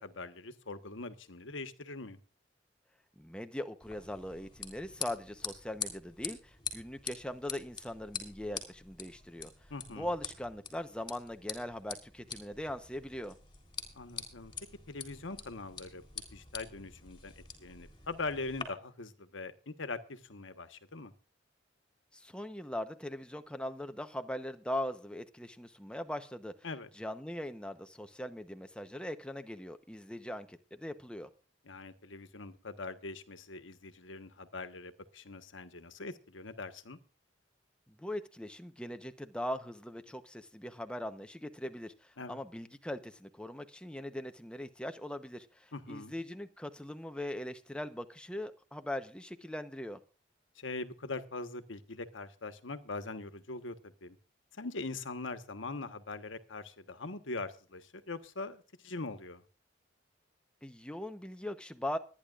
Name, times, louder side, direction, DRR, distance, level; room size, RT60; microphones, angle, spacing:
voice 1, 0.0-2.2 9.7-10.1 13.9-14.5 14.9-16.0 16.3-21.1 26.6-26.9 31.6-37.0 42.2-42.4 45.7-46.1 50.5-54.2 54.6-59.4, left 3 dB, 85° left, 10 dB, 1.3 m, -42 dB
voice 2, 3.2-9.5 9.9-13.4 22.1-26.5 27.0-31.3 37.9-50.0 60.6-62.0, left 1 dB, 5° left, 8 dB, 0.9 m, -40 dB
sound 1, 3.8-18.6, left 6 dB, 25° left, 3.6 m, -45 dB
25.0 x 10.0 x 2.5 m, 0.36 s
head